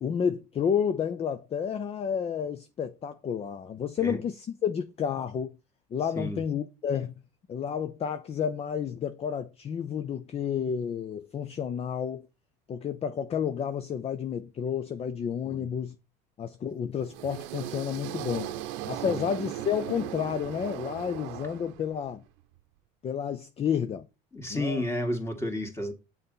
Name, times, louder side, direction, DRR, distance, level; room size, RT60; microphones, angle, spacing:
voice 1, 0.0-5.6 5.9-7.1 7.5-12.3 12.7-16.0 16.4-18.5 18.9-22.2 23.0-24.1 24.5-24.8, left 7 dB, 30° left, 0.6 m, -30 dB
sound 1, 17.0-22.1, right 13 dB, 75° right, 0.8 m, -38 dB
voice 2, 24.3-25.9, left 1 dB, 15° left, 2.1 m, -31 dB
6.6 x 4.1 x 5.5 m
supercardioid pair, 105°, 20 cm